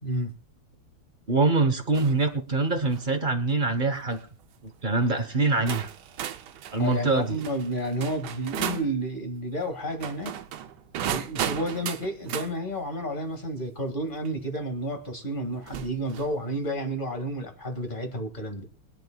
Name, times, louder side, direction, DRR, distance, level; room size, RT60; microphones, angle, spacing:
voice 1, 0.0-0.3 6.8-10.4 11.0-18.6, right 1 dB, 25° left, 5 dB, 2.0 m, -31 dB
voice 2, 1.3-4.2 4.8-5.9 6.7-7.4, right 3 dB, 35° right, 8 dB, 0.8 m, -24 dB
sound 1, 1.9-2.2 2.7-3.1 3.9-4.2 5.1-5.2 5.7-8.9 9.9-12.5 14.3-14.4 15.6-16.4, right 10 dB, 65° right, 1.1 m, -35 dB
23.5 x 10.0 x 2.3 m, 0.37 s
omnidirectional pair, 2.4 m